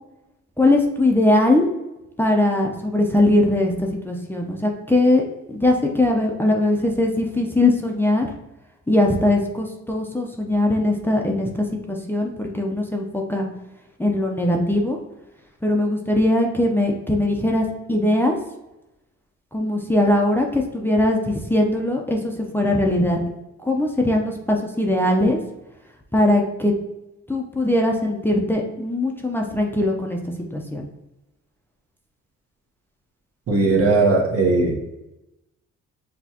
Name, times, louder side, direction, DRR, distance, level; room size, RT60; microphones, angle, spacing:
voice 1, 0.6-1.7 2.2-5.2 5.5-8.3 8.9-13.5 14.0-15.0 15.6-18.4 19.5-23.2 23.6-25.4 26.1-26.7 27.3-30.2 30.5-30.9, left 1 dB, 5° left, 0 dB, 0.6 m, -20 dB
voice 2, 33.5-34.8, right 3 dB, 50° right, 0 dB, 1.1 m, -18 dB
6.2 x 2.3 x 2.8 m, 0.95 s
cardioid pair, 90°, 30 cm